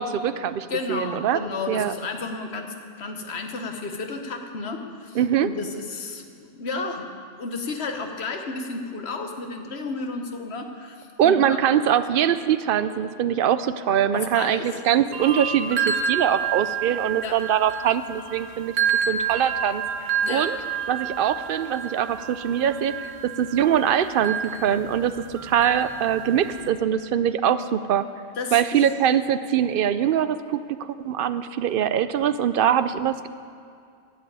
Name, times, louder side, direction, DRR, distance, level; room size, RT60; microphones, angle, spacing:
voice 1, 0.0-1.4 1.7-1.9 5.1-5.5 11.2-18.7 19.1-20.6 20.9-25.1 25.4-28.0 28.5-30.8 31.0-33.3, right 9 dB, 60° right, 13 dB, 0.6 m, -23 dB
voice 2, 0.7-7.1 7.4-11.6 14.1-14.7 17.2-17.4 20.2-20.5 28.4-28.8, left 3 dB, 60° left, 4 dB, 1.4 m, -32 dB
sound 1, 15.1-26.7, right 7 dB, 80° right, 1.3 m, -29 dB
11.5 x 7.7 x 8.7 m, 2.3 s
omnidirectional pair, 1.3 m